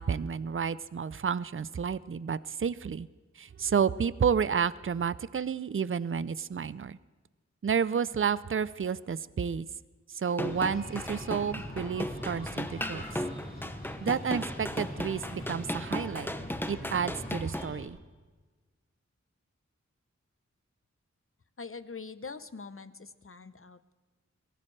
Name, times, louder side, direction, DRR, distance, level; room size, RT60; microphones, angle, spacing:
voice 1, 0.0-3.1 3.4-7.0 7.6-9.7 10.1-13.2 14.0-16.3 16.7-18.0, right 6 dB, 45° right, 17 dB, 0.5 m, -30 dB
sound 1, 10.3-17.7, left 1 dB, 5° left, 0.8 m, -36 dB
Breathing, 10.4-17.9, left 1 dB, 30° left, 5.0 m, -42 dB
voice 2, 21.6-23.9, left 4 dB, 45° left, 12 dB, 0.8 m, -43 dB
23.5 x 16.0 x 3.3 m, 1.3 s
wide cardioid pair, 45°, 29 cm